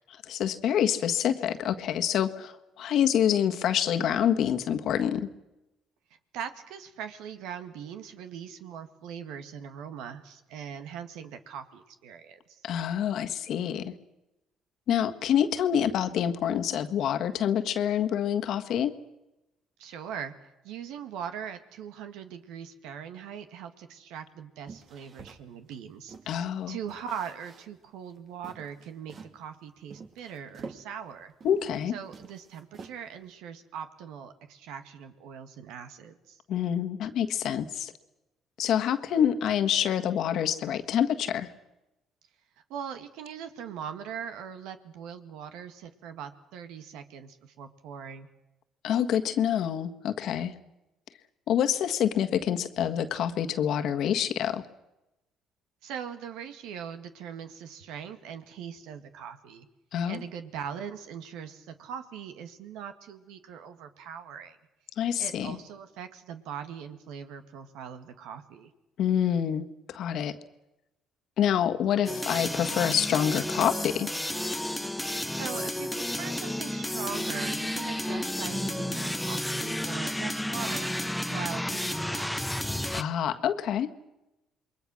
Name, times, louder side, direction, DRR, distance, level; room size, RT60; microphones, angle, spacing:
voice 1, 0.3-5.3 12.6-13.9 14.9-18.9 26.3-26.8 31.4-31.9 36.5-37.9 38.6-41.5 48.8-50.5 51.5-54.6 59.9-60.2 65.0-65.6 69.0-70.3 71.4-74.1 82.9-83.9, left 9 dB, 65° left, 8 dB, 1.6 m, -27 dB
voice 2, 6.3-12.6 19.8-20.3 20.6-31.3 31.9-36.4 42.7-48.3 55.8-59.7 60.1-64.6 65.2-68.7 75.0-82.7, right 8 dB, 80° right, 8 dB, 1.9 m, -41 dB
sound 1, 24.7-26.4 26.9-27.8 28.1-28.2 28.4-29.4 29.9-31.8 32.1-33.3, right 5 dB, 50° right, 2.5 m, -47 dB
sound 2, 72.1-83.0, left 1 dB, 5° left, 1.0 m, -32 dB
28.0 x 21.5 x 6.5 m, 0.96 s
supercardioid pair, 70°, 0 cm